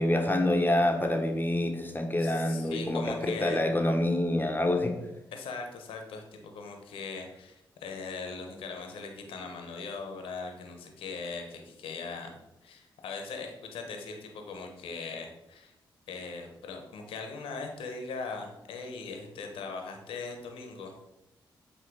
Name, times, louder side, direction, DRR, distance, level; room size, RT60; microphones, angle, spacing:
voice 1, 0.0-5.0, left 1 dB, 20° left, 4 dB, 1.1 m, -27 dB
voice 2, 2.2-3.6 5.3-12.3 12.6-15.7 16.1-21.0, left 4 dB, 90° left, 4 dB, 1.0 m, -40 dB
8.2 x 2.9 x 4.7 m, 0.93 s
supercardioid pair, 50°, 9 cm